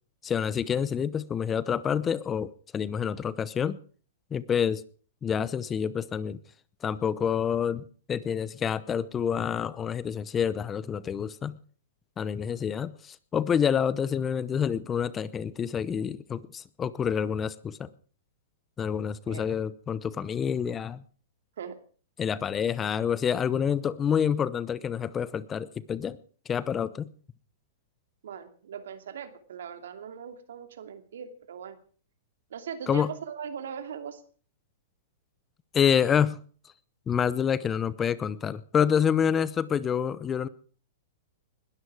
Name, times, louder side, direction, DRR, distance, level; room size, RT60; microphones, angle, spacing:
voice 1, 0.2-3.8 4.3-4.8 5.2-6.4 6.8-11.6 12.2-17.9 18.8-21.0 22.2-26.2 26.5-27.1 32.9-33.1 35.7-36.4 37.1-40.5, left 8 dB, 20° left, 0.8 m, -27 dB
voice 2, 19.3-19.6 21.6-21.8 28.2-31.8 32.5-34.2, right 7 dB, 75° right, 2.8 m, -40 dB
21.0 x 13.0 x 4.9 m
hypercardioid pair, 135°, 0 cm